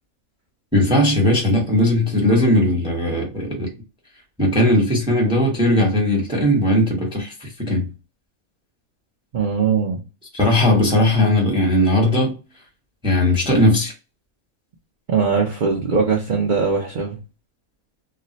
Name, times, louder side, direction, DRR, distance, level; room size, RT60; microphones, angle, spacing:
voice 1, 0.7-3.7 4.4-7.9 10.3-12.3 13.0-13.9, left 1 dB, 5° right, 0.7 m, -18 dB
voice 2, 9.3-10.0 15.1-17.2, right 5 dB, 60° right, 0.5 m, -20 dB
2.4 x 2.1 x 3.8 m
omnidirectional pair, 1.5 m